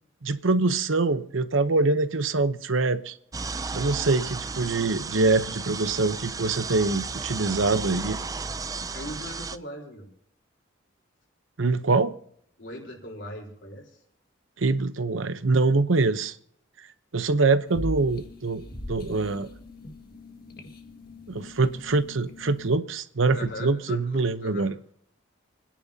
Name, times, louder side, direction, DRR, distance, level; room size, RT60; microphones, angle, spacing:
voice 1, 0.2-3.1 3.7-8.2 11.6-12.1 14.6-16.4 17.1-19.5 21.3-24.7, right 3 dB, 75° right, 0.9 m, -24 dB
sound 1, 3.3-9.6, right 4 dB, 20° right, 0.4 m, -34 dB
voice 2, 8.9-10.1 12.6-13.9 23.3-24.7, left 1 dB, 65° left, 4.1 m, -39 dB
sound 2, 17.7-22.8, left 1 dB, 45° left, 1.8 m, -40 dB
28.5 x 10.5 x 2.8 m
head